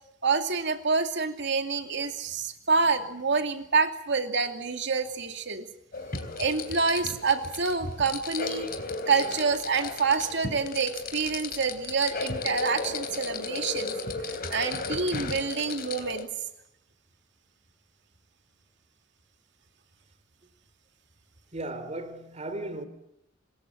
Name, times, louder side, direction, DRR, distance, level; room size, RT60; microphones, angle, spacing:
voice 1, 0.2-5.7 6.4-8.7 9.1-14.0 14.5-16.3, right 4 dB, 65° right, 2.6 m, -27 dB
sound 1, 5.9-16.2, left 3 dB, 50° left, 3.4 m, -35 dB
voice 2, 21.5-22.8, right 2 dB, 35° right, 3.2 m, -36 dB
26.5 x 21.0 x 8.6 m
head